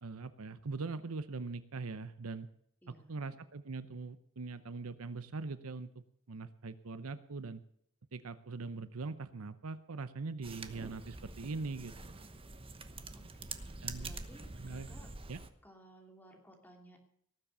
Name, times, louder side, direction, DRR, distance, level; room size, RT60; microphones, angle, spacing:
voice 1, 0.0-2.5 2.9-7.6 8.1-12.2 13.8-14.1 14.6-14.9 15.3-15.4, right 3 dB, 70° right, 13 dB, 0.8 m, -42 dB
voice 2, 2.8-3.2 13.2-13.6 14.0-15.1 15.6-17.0, right 1 dB, 10° left, 2 dB, 2.8 m, -58 dB
sound 1, 10.4-15.5, right 3 dB, 25° right, 1.0 m, -46 dB
18.5 x 7.6 x 6.8 m, 0.70 s
head